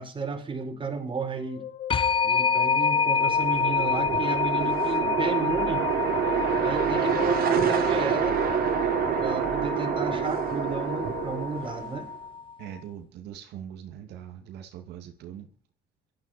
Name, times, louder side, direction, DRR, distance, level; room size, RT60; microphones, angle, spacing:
voice 1, 0.0-1.7 2.2-5.9 6.6-8.4 9.2-12.1, right 4 dB, 30° right, 4.5 m, -33 dB
sound 1, 1.2-11.5, left 8 dB, 55° left, 1.7 m, -39 dB
sound 2, 1.9-12.5, left 5 dB, 30° left, 0.6 m, -28 dB
sound 3, 3.1-12.1, right 8 dB, 60° right, 3.6 m, -27 dB
voice 2, 12.6-15.5, right 10 dB, 80° right, 2.5 m, -41 dB
17.0 x 13.5 x 4.5 m
cardioid pair, 110°, 17 cm